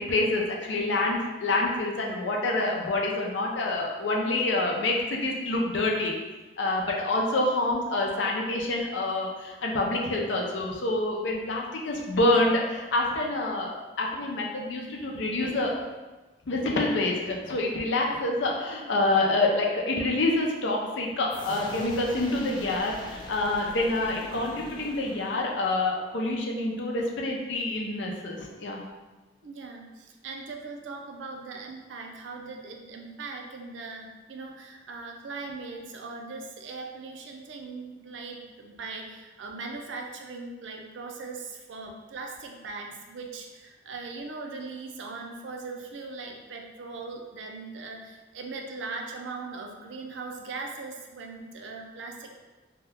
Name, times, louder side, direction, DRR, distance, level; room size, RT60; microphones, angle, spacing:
voice 1, 0.0-6.1 6.6-13.7 14.0-15.7 16.5-28.8, left 2 dB, 80° left, -1 dB, 0.5 m, -27 dB
sound 1, 21.3-26.0, left 1 dB, 25° left, 0.3 m, -43 dB
voice 2, 29.4-52.4, right 3 dB, 85° right, 2 dB, 0.4 m, -40 dB
2.8 x 2.2 x 3.4 m, 1.2 s
head